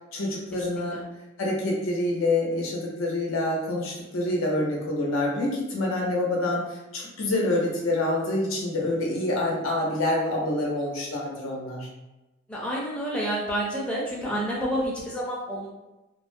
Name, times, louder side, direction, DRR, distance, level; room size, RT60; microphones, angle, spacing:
voice 1, 0.1-1.0 1.4-11.9, left 1 dB, 90° left, -3 dB, 0.6 m, -27 dB
voice 2, 0.7-1.0 12.5-15.7, equal, 5° left, -6 dB, 0.4 m, -29 dB
2.3 x 2.0 x 2.5 m, 1.0 s
head